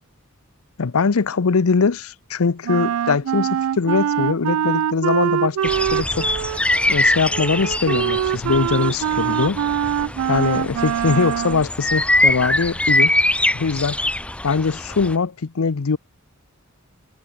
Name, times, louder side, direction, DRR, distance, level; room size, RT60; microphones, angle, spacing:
voice 1, 0.8-6.3 6.9-9.6 10.3-13.2 13.5-14.0 14.4-16.0, left 4 dB, 85° left, 0.7 m, -21 dB
Wind instrument woodwind instrument, 2.6-11.7, right 9 dB, 80° right, 0.3 m, -23 dB
sound 1, 5.6-15.2, left 1 dB, 5° left, 1.1 m, -23 dB
head